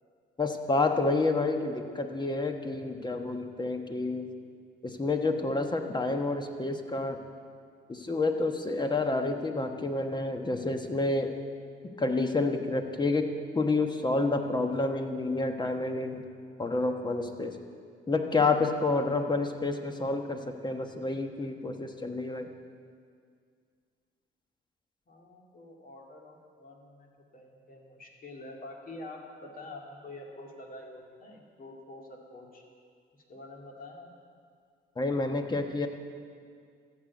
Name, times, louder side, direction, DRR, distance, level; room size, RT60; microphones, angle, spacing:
voice 1, 0.4-4.3 4.8-7.2 7.9-11.3 12.0-16.2 16.6-17.6 18.1-22.5 35.0-35.9, left 3 dB, 20° left, 5 dB, 1.2 m, -29 dB
voice 2, 25.1-32.6 33.1-34.1, left 2 dB, 45° left, 0 dB, 2.4 m, -47 dB
14.0 x 6.6 x 8.4 m, 2.1 s
cardioid pair, 90°, 20 cm